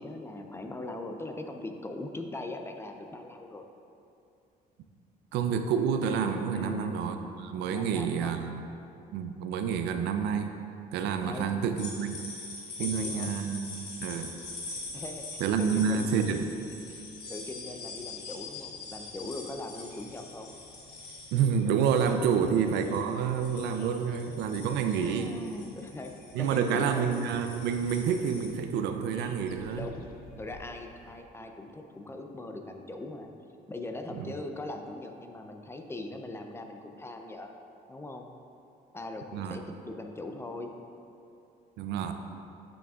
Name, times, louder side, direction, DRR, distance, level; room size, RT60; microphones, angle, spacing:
voice 1, 0.0-3.6 6.5-7.0 7.7-8.3 11.3-11.5 12.8-13.3 14.9-16.2 17.3-20.5 25.0-26.1 26.4-27.1 29.7-30.1 30.4-33.3 33.7-37.5 37.9-38.3 38.9-40.7, left 2 dB, 15° left, 4 dB, 0.5 m, -40 dB
voice 2, 5.3-8.6 9.1-10.5 10.9-12.2 12.8-14.3 15.4-16.5 21.3-25.3 26.3-29.9 34.1-34.3 39.3-39.6 41.8-42.1, right 7 dB, 80° right, 7 dB, 0.5 m, -28 dB
sound 1, 11.8-28.5, left 2 dB, 85° left, 1.4 m, -44 dB
sound 2, 14.4-31.2, left 6 dB, 60° left, 0.6 m, -51 dB
8.8 x 6.1 x 2.4 m, 2.6 s
cardioid pair, 110°, 17 cm